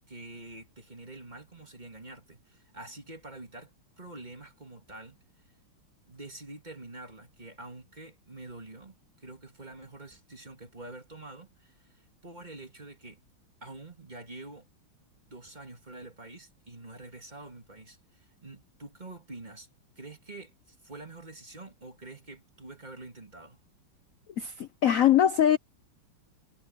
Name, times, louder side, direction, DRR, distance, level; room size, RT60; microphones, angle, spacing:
voice 1, 0.1-5.2 6.1-13.2 13.6-14.7 15.3-19.7 20.0-23.6, right 2 dB, 20° right, 2.7 m, -46 dB
voice 2, 24.4-25.6, left 10 dB, 65° left, 0.8 m, -22 dB
omnidirectional pair, 2.3 m